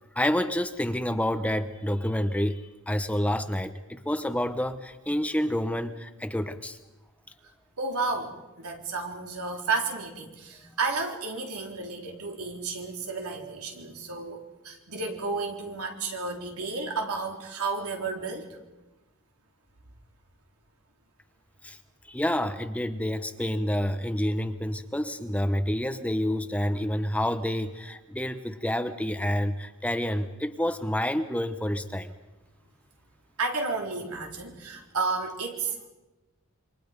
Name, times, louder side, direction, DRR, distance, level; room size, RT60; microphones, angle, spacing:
voice 1, 0.1-6.8 21.6-21.8 22.1-32.1, left 1 dB, 5° left, 9 dB, 0.9 m, -28 dB
voice 2, 7.8-18.5 33.4-35.9, right 4 dB, 90° right, 1 dB, 3.9 m, -32 dB
28.0 x 25.0 x 5.3 m, 1.1 s
head